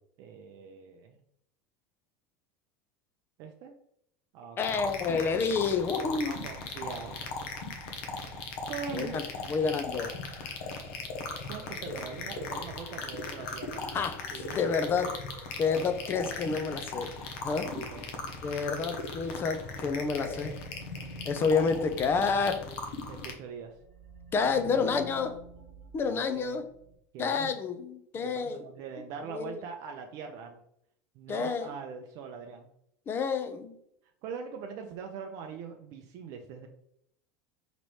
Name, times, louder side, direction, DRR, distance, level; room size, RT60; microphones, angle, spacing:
voice 1, 0.2-1.2 3.4-3.7 4.3-4.7 6.0-7.3 8.7-9.2 11.5-13.8 14.3-14.7 17.5-18.0 23.1-23.7 24.4-25.0 26.0-26.6 27.1-27.6 28.1-30.6 31.2-32.7 34.2-36.7, right 6 dB, 55° right, 3 dB, 0.5 m, -42 dB
sound 1, 4.6-23.3, left 4 dB, 75° left, 0.8 m, -38 dB
voice 2, 4.6-6.3 8.9-9.2 9.5-10.1 11.9-12.0 13.9-15.2 15.6-17.1 17.4-17.7 18.4-20.6 21.3-22.7 24.3-25.4 25.9-26.7 27.2-28.6 29.3-29.5 31.3-31.8 33.1-33.8, left 5 dB, 30° left, 8 dB, 0.5 m, -29 dB
sound 2, 19.3-23.2 23.6-26.9, equal, 40° right, 1.2 m, -49 dB
4.1 x 3.0 x 3.1 m, 0.72 s
supercardioid pair, 120°, 8 cm